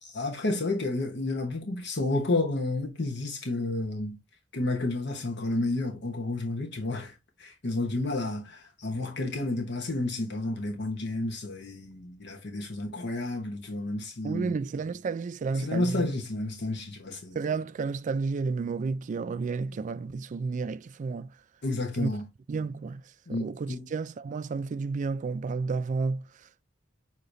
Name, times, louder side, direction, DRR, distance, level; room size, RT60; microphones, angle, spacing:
voice 1, 0.0-4.2 4.5-7.1 7.4-14.5 15.6-17.4 21.6-22.3 23.3-23.9, left 2 dB, 60° left, 1.1 m, -31 dB
voice 2, 14.2-16.1 17.3-21.4 22.0-22.1 22.5-23.0 23.3-26.6, right 4 dB, 40° right, 0.3 m, -31 dB
6.4 x 2.9 x 2.6 m
head